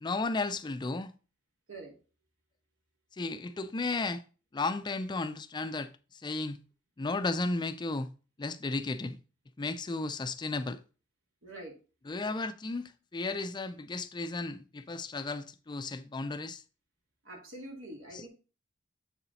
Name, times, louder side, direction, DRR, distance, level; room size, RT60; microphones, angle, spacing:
voice 1, 0.0-1.1 3.2-4.2 4.5-6.6 7.0-8.1 8.4-9.2 9.6-10.8 12.1-16.6 18.1-18.2, left 3 dB, 20° left, 0.4 m, -34 dB
voice 2, 11.4-11.8 17.2-18.3, right 1 dB, 85° right, 2.5 m, -45 dB
7.7 x 6.9 x 2.7 m
head